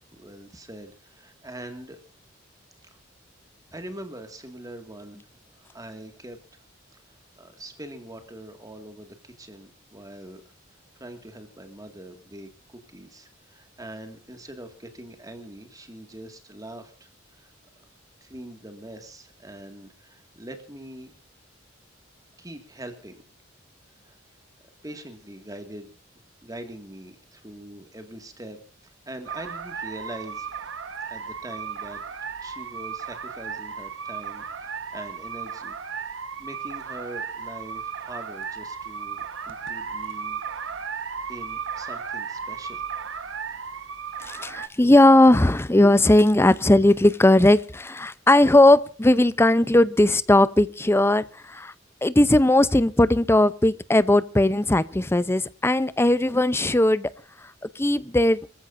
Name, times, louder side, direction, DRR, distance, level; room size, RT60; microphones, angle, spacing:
voice 1, 0.1-2.0 2.9-3.0 3.7-6.6 6.9-10.4 11.0-17.5 18.2-21.1 22.4-23.2 24.0-24.2 24.8-25.9 26.4-30.7 31.0-32.0 32.4-35.8 36.4-40.4 41.3-42.8, right 1 dB, 20° right, 2.1 m, -42 dB
sound 1, 29.3-44.7, right 6 dB, 85° right, 1.3 m, -35 dB
voice 2, 44.2-51.7 52.0-57.1 57.4-57.5 57.8-58.5, left 1 dB, 15° left, 0.6 m, -18 dB
25.5 x 15.5 x 2.6 m
head